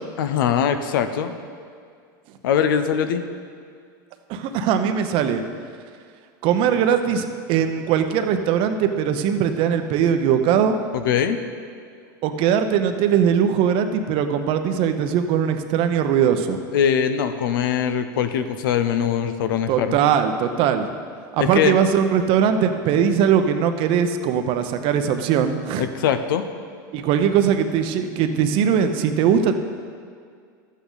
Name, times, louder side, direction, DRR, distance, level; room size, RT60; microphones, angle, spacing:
voice 1, 0.2-1.3 2.4-3.2 10.9-11.4 16.7-20.0 21.4-21.7 25.8-26.4, left 8 dB, 80° left, 9 dB, 0.7 m, -22 dB
voice 2, 4.3-5.4 6.4-10.8 12.2-16.6 19.7-20.9 21.3-25.9 26.9-29.5, right 8 dB, 55° right, 8 dB, 0.8 m, -20 dB
11.5 x 8.3 x 4.0 m, 2.2 s
supercardioid pair, 115°, 11 cm